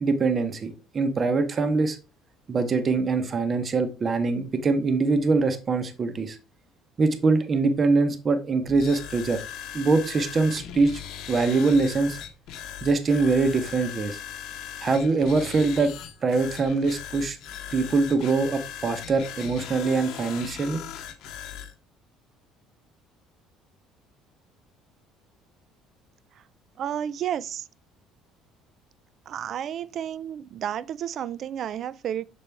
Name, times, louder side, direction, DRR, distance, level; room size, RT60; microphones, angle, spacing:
voice 1, 0.0-2.0 2.5-6.4 7.0-9.4 9.7-11.0 11.3-12.2 12.8-14.2 14.8-15.9 16.2-17.4 17.7-20.8, right 3 dB, 30° right, 0.7 m, -23 dB
sound 1, 8.7-21.7, left 9 dB, 70° left, 0.9 m, -39 dB
voice 2, 26.8-27.7 29.3-32.2, right 9 dB, 45° right, 0.3 m, -31 dB
6.8 x 4.2 x 3.4 m
cardioid pair, 150°, 0 cm